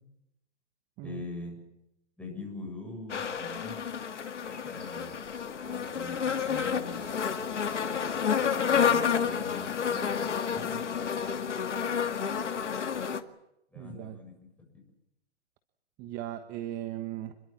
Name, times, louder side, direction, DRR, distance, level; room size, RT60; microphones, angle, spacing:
voice 1, 1.0-1.6 2.2-3.8 4.4-5.2 5.6-7.0 8.7-10.8 13.7-14.4, left 3 dB, 5° left, 2 dB, 7.1 m, -42 dB
sound 1, 3.1-13.2, left 7 dB, 80° left, 2.1 m, -30 dB
voice 2, 13.7-14.2 16.0-17.3, right 13 dB, 25° right, 9 dB, 1.3 m, -38 dB
27.5 x 22.0 x 7.4 m, 0.84 s
hypercardioid pair, 140°, 35 cm